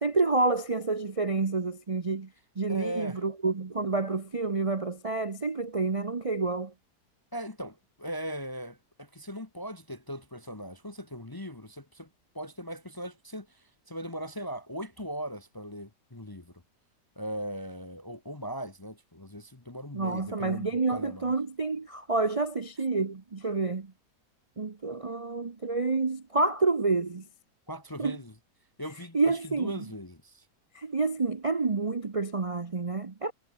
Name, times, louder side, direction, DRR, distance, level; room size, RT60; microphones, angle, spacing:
voice 1, 0.0-2.3 2.6-6.7 19.9-23.9 24.6-27.3 28.0-28.2 29.1-29.8 30.7-33.3, right 3 dB, 30° right, 0.7 m, -28 dB
voice 2, 2.7-3.2 7.3-12.1 12.3-16.5 17.2-21.3 27.7-28.3 28.8-30.4, equal, 15° left, 0.8 m, -39 dB
omnidirectional pair, 1.8 m